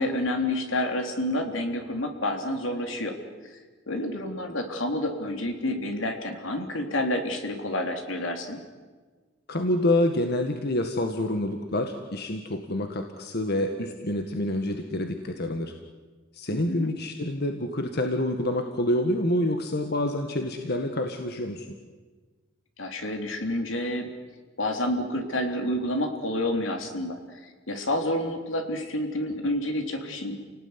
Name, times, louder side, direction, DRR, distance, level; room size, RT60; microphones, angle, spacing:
voice 1, 0.0-3.2 3.5-3.6 3.9-8.6 16.5-16.9 22.8-24.1 24.6-30.4, left 1 dB, 80° left, 4 dB, 3.7 m, -29 dB
voice 2, 9.5-15.7 16.3-21.7, left 1 dB, 55° left, 5 dB, 1.8 m, -27 dB
29.5 x 18.5 x 9.8 m, 1.4 s
head